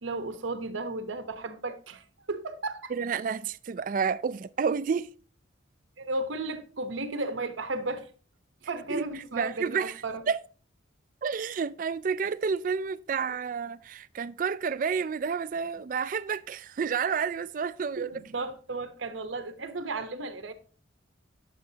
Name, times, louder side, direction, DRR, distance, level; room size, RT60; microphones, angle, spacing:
voice 1, 0.0-2.9 6.0-8.1 8.7-10.2 18.0-20.5, right 2 dB, 80° right, 1.0 m, -34 dB
voice 2, 2.9-5.1 8.9-9.0 9.3-10.4 11.2-18.1, right 6 dB, 45° right, 0.3 m, -30 dB
9.8 x 7.0 x 2.8 m
head